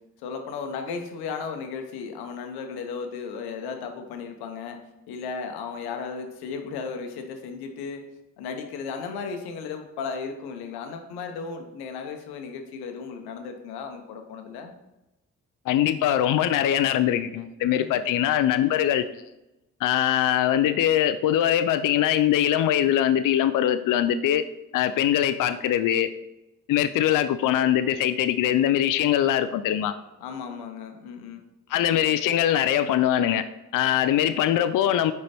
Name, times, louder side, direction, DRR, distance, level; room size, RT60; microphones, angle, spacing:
voice 1, 0.2-4.8 5.1-8.1 8.4-14.7 17.7-18.0 30.2-31.4, left 5 dB, 85° left, 6 dB, 0.8 m, -35 dB
voice 2, 15.7-19.0 19.8-24.4 24.7-26.1 26.7-29.9 31.7-33.5 33.7-35.1, left 11 dB, 60° left, 11 dB, 0.5 m, -22 dB
5.2 x 4.6 x 4.2 m, 0.96 s
supercardioid pair, 50°, 37 cm